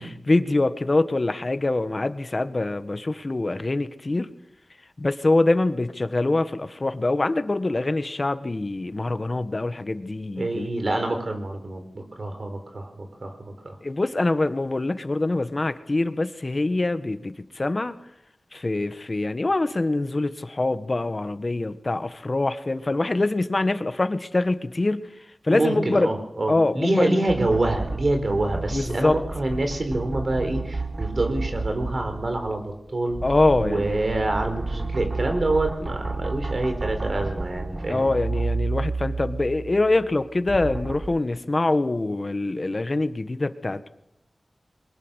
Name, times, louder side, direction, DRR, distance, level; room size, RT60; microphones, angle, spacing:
voice 1, 0.0-4.3 5.0-10.7 13.8-17.9 18.5-25.0 25.4-26.1 26.5-27.2 28.7-29.2 33.2-34.0 37.9-43.9, left 2 dB, 45° left, 10 dB, 1.5 m, -24 dB
voice 2, 10.4-13.8 25.5-33.2 33.6-38.1, right 2 dB, 60° right, 6 dB, 4.7 m, -26 dB
sound 1, 27.3-32.7 33.1-41.1, right 3 dB, 40° right, 1.2 m, -31 dB
22.5 x 20.5 x 6.5 m, 0.83 s
cardioid pair, 45°, 0 cm